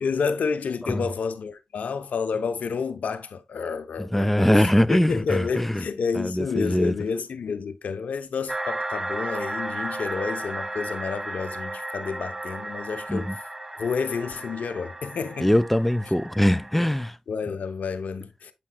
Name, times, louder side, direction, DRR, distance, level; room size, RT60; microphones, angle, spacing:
voice 1, 0.0-13.3 13.8-15.5 17.3-18.5, left 5 dB, 80° left, 0.8 m, -30 dB
voice 2, 4.1-5.8 6.2-6.9 13.1-13.3 15.4-17.2, equal, 5° left, 0.4 m, -22 dB
sound 1, 8.5-17.1, right 2 dB, 15° right, 0.9 m, -34 dB
8.5 x 5.4 x 2.3 m
cardioid pair, 45°, 3 cm